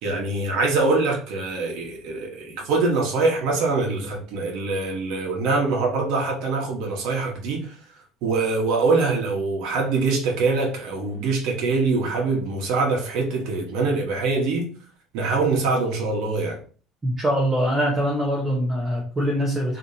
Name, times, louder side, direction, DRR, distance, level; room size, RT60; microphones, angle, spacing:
voice 1, 0.0-7.7 8.2-14.7 15.1-16.6, right 3 dB, 70° right, 1.4 m, -24 dB
voice 2, 17.0-19.8, equal, 15° right, 1.2 m, -23 dB
5.0 x 3.2 x 2.8 m
cardioid pair, 150°, 0 cm